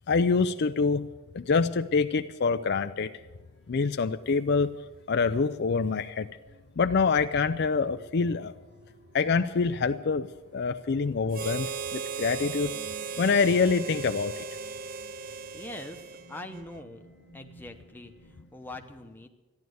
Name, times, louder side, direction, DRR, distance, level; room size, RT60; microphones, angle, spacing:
voice 1, 0.1-1.1 1.3-3.1 3.7-4.7 5.1-6.3 6.8-8.5 9.1-14.4, left 4 dB, 50° left, 9 dB, 0.4 m, -26 dB
sound 1, 2.2-18.4, right 2 dB, 60° right, 4.2 m, -57 dB
Harmonica, 11.3-16.8, right 5 dB, 40° right, 0.4 m, -37 dB
voice 2, 15.5-17.0 17.3-19.3, left 2 dB, 10° left, 4 dB, 0.9 m, -43 dB
14.5 x 10.5 x 7.9 m, 1.2 s
head